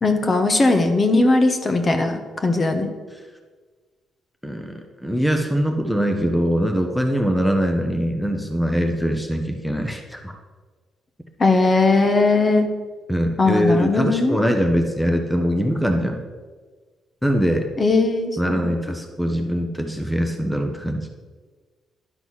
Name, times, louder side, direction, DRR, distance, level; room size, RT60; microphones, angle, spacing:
voice 1, 0.0-2.9 11.4-12.7 13.4-14.4 17.8-18.6, left 3 dB, 35° left, 6 dB, 1.0 m, -18 dB
voice 2, 4.4-10.3 13.1-16.2 17.2-17.7 18.4-21.1, equal, 5° left, 4 dB, 0.9 m, -22 dB
11.0 x 3.8 x 6.3 m, 1.4 s
cardioid pair, 90°, 0 cm